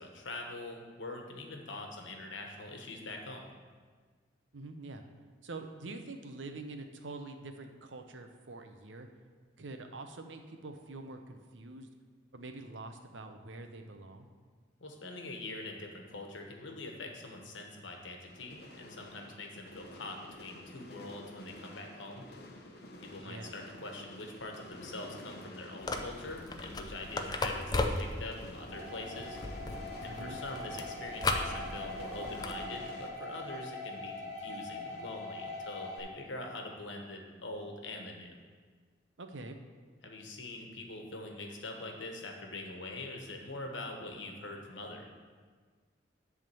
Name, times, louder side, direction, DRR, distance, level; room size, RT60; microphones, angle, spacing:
voice 1, 0.0-3.5 14.8-22.2 23.0-29.4 30.0-38.3 40.0-45.1, left 2 dB, 90° left, 2 dB, 1.3 m, -44 dB
voice 2, 4.5-5.0 5.4-9.1 9.6-11.9 12.3-14.3 23.1-23.5 30.0-30.4 39.2-39.6, right 2 dB, 85° right, 6 dB, 0.8 m, -45 dB
sound 1, 18.3-33.1, left 1 dB, 55° left, 0.9 m, -50 dB
sound 2, 25.8-32.7, left 2 dB, 20° left, 0.5 m, -37 dB
sound 3, 28.7-36.0, left 2 dB, 35° left, 1.4 m, -42 dB
10.5 x 3.6 x 6.9 m, 1.6 s
head